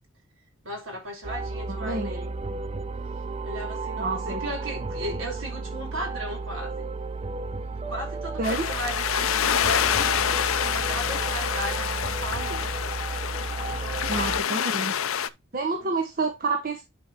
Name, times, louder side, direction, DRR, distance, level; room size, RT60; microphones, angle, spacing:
voice 1, 0.6-2.3 3.4-6.9 7.9-12.7 13.7-14.7 15.8-15.9, right 1 dB, 65° right, 4.4 m, -36 dB
sound 1, 1.2-14.4, right 3 dB, 30° right, 0.5 m, -33 dB
voice 2, 1.7-2.1 4.0-4.4 8.4-8.7 14.1-14.9 15.5-16.8, right 3 dB, 45° right, 1.2 m, -28 dB
Lido Seaside Beach Waves, 8.4-15.3, left 9 dB, 80° left, 0.6 m, -27 dB
11.0 x 4.6 x 2.9 m
head